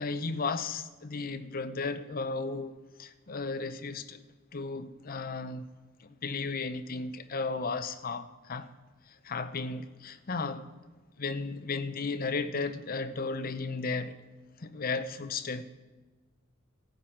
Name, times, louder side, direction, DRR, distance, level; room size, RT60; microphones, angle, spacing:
voice 1, 0.0-2.7 3.0-4.2 4.5-5.7 6.0-8.7 9.1-10.7 11.2-14.2 14.6-15.6, left 4 dB, 45° left, 0.7 m, -34 dB
17.0 x 8.9 x 4.5 m
head